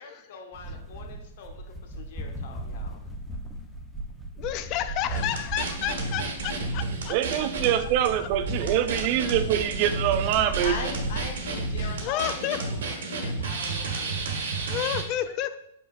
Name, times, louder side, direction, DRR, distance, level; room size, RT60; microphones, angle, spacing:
voice 1, 0.0-1.6 1.9-3.0 10.6-14.3, left 5 dB, 55° left, 3 dB, 1.1 m, -41 dB
sound 1, 0.5-12.1, right 1 dB, ahead, 0.9 m, -37 dB
voice 2, 4.4-7.5 8.2-8.3 8.6-8.7 11.8-15.6, left 12 dB, 40° left, 11 dB, 0.5 m, -33 dB
sound 2, 5.1-7.7 8.0-8.1 8.5-15.0, right 3 dB, 65° right, 1.4 m, -31 dB
voice 3, 7.1-10.9, right 11 dB, 45° right, 10 dB, 0.4 m, -25 dB
7.8 x 4.9 x 2.5 m, 0.81 s
figure-of-eight pair, 105°, 0 cm